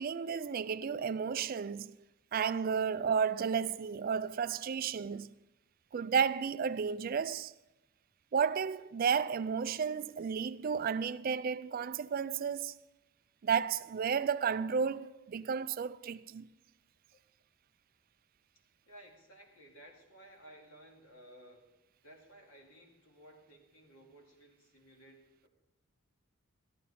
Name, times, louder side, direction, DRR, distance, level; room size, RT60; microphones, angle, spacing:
voice 1, 0.0-1.9 2.3-5.3 5.9-7.5 8.3-12.7 13.4-16.5, right 6 dB, 40° right, 0.3 m, -32 dB
voice 2, 18.9-21.7 22.0-25.5, right 1 dB, 80° left, 2.5 m, -57 dB
14.0 x 12.5 x 4.2 m
head